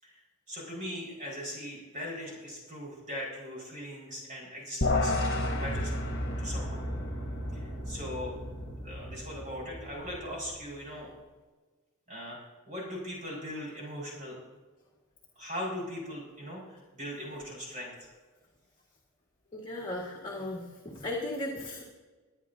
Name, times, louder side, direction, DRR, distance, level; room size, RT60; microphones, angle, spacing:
voice 1, 0.5-5.9 6.4-6.8 7.5-8.4 8.8-11.1 12.1-12.4 12.6-14.4 15.4-18.1, equal, 35° right, -3 dB, 4.6 m, -40 dB
sound 1, 4.8-10.3, left 1 dB, 55° left, 1.2 m, -33 dB
sound 2, 5.1-10.6, equal, 15° right, 5.0 m, -42 dB
voice 2, 19.5-21.8, left 1 dB, 25° left, -3 dB, 1.6 m, -36 dB
24.5 x 9.8 x 2.7 m, 1.3 s
head